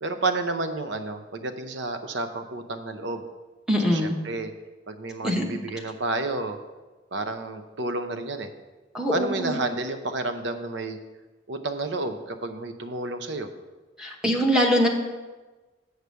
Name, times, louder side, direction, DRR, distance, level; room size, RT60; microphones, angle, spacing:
voice 1, 0.0-3.2 3.8-4.5 4.9-6.6 7.1-8.5 9.1-11.0 11.5-13.5, right 2 dB, 65° right, 7 dB, 0.7 m, -30 dB
voice 2, 3.7-4.1 5.2-5.4 8.9-9.6 14.0-14.9, equal, 5° right, -1 dB, 0.9 m, -23 dB
8.0 x 4.9 x 6.8 m, 1.2 s
head